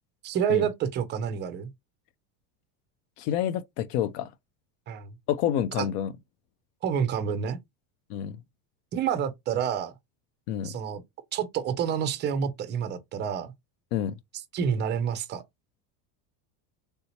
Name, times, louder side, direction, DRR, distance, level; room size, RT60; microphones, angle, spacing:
voice 1, 0.2-1.7 4.9-5.1 5.8-5.9 6.8-7.6 8.9-9.9 10.6-11.0 11.3-13.5 14.5-15.4, right 8 dB, 25° right, 0.4 m, -28 dB
voice 2, 3.2-4.3 5.3-6.1 8.1-8.4 10.5-10.7 13.9-14.1, left 10 dB, 70° left, 0.5 m, -28 dB
3.4 x 2.8 x 2.8 m
supercardioid pair, 135°, 48 cm